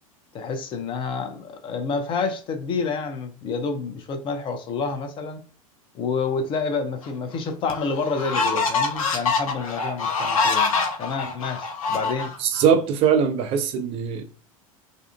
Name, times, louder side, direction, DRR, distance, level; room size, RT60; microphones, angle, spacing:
voice 1, 0.3-5.4 5.9-12.3, left 4 dB, 30° left, 0.4 m, -28 dB
sound 1, 7.0-7.1 7.7-12.7, left 4 dB, 70° left, 0.7 m, -25 dB
voice 2, 12.4-14.2, right 7 dB, 35° right, 0.4 m, -21 dB
2.5 x 2.4 x 2.2 m
figure-of-eight pair, 85°, 18 cm